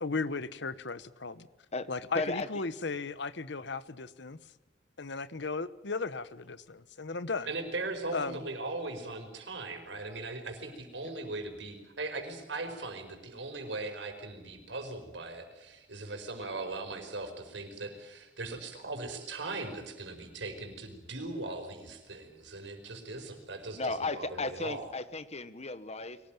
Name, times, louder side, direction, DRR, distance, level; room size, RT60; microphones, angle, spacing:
voice 1, 0.0-1.5 1.9-4.4 5.0-7.5 8.1-8.4, left 4 dB, 70° left, 15 dB, 1.1 m, -36 dB
voice 2, 2.1-2.6 23.7-26.2, left 3 dB, 35° left, 13 dB, 1.3 m, -35 dB
voice 3, 7.5-24.9, right 2 dB, 70° right, 5 dB, 5.1 m, -39 dB
23.5 x 18.5 x 9.2 m, 1.1 s
head